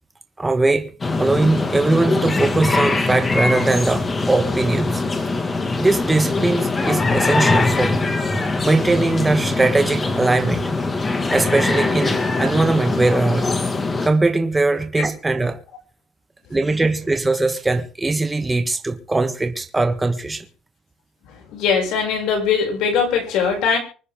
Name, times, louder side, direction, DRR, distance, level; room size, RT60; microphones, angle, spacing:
voice 1, 0.4-0.9 1.2-5.0 5.8-8.0 8.6-10.9 11.3-13.4 14.0-15.6 16.5-20.4, right 2 dB, 10° right, 1.5 m, -20 dB
sound 1, 1.0-14.1, left 3 dB, 20° left, 2.1 m, -22 dB
voice 2, 21.3-23.8, left 6 dB, 75° left, 6.8 m, -21 dB
25.0 x 9.8 x 3.8 m
cardioid pair, 155°, 0 cm